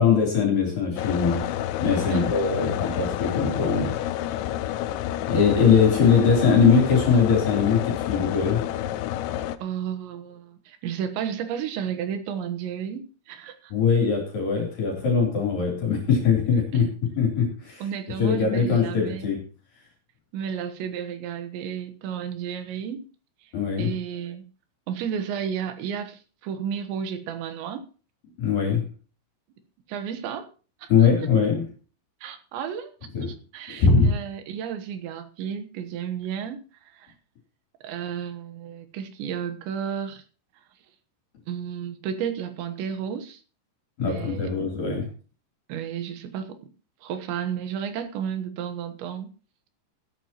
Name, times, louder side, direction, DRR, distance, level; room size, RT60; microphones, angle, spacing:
voice 1, 0.0-1.5 1.8-3.9 5.3-8.7 13.7-17.8 18.2-19.4 23.5-23.9 28.4-28.9 30.9-31.7 33.1-33.3 33.7-34.1 44.0-45.1, left 6 dB, 50° left, 0 dB, 4.7 m, -21 dB
sound 1, 1.0-9.6, left 12 dB, 80° left, 2.9 m, -29 dB
voice 2, 9.6-13.7 16.7-16.8 17.8-19.3 20.3-23.1 23.8-24.4 24.9-27.9 29.9-30.5 30.8-30.9 32.2-32.9 33.3-36.6 36.9-37.1 37.8-40.2 41.5-43.4 44.0-44.5 45.7-46.6 47.0-49.3, right 8 dB, 75° right, 9 dB, 3.4 m, -32 dB
16.0 x 12.0 x 3.0 m, 0.37 s
omnidirectional pair, 5.4 m